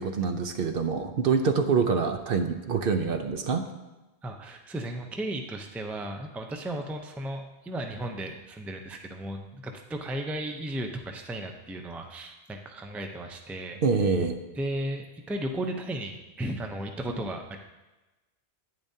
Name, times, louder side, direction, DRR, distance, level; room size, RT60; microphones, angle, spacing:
voice 1, 0.0-3.6 13.8-14.4, right 5 dB, 60° right, 7 dB, 0.8 m, -25 dB
voice 2, 4.2-13.8 14.6-17.6, right 1 dB, ahead, 4 dB, 0.4 m, -35 dB
10.5 x 9.3 x 2.8 m, 1.1 s
omnidirectional pair, 1.1 m